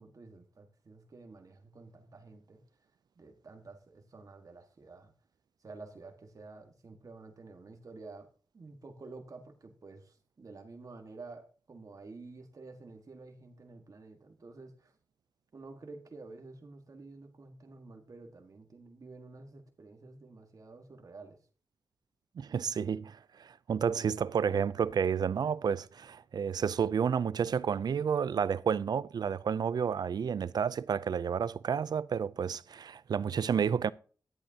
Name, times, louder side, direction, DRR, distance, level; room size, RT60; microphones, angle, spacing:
voice 1, 0.0-2.6 3.2-5.1 5.6-14.9 15.5-21.4, right 3 dB, 55° right, 1.6 m, -50 dB
voice 2, 22.4-33.9, right 7 dB, 75° right, 0.4 m, -31 dB
13.5 x 11.0 x 2.8 m
wide cardioid pair, 90°, 7 cm